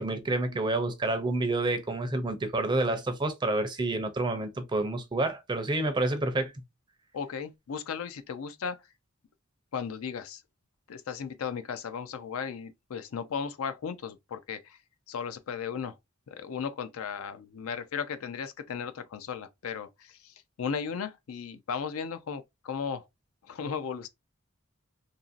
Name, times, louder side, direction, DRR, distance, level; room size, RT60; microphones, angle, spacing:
voice 1, 0.0-6.5, right 2 dB, 20° right, 0.4 m, -29 dB
voice 2, 7.1-8.8 9.7-10.4 10.9-14.8 15.1-16.0 16.3-23.1 23.4-24.1, left 6 dB, 75° left, 0.4 m, -36 dB
2.9 x 2.6 x 2.4 m
head